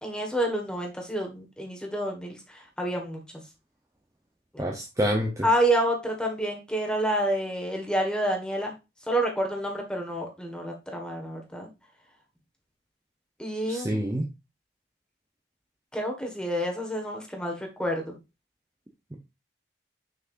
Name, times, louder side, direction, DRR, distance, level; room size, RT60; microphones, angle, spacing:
voice 1, 0.0-3.2 5.4-8.7 9.1-11.7 13.4-14.0 15.9-18.2, right 1 dB, 5° left, 1 dB, 1.5 m, -28 dB
voice 2, 4.6-5.5 13.7-14.3 19.1-19.2, equal, 15° right, 1 dB, 0.7 m, -27 dB
6.6 x 5.8 x 2.5 m, 0.25 s
head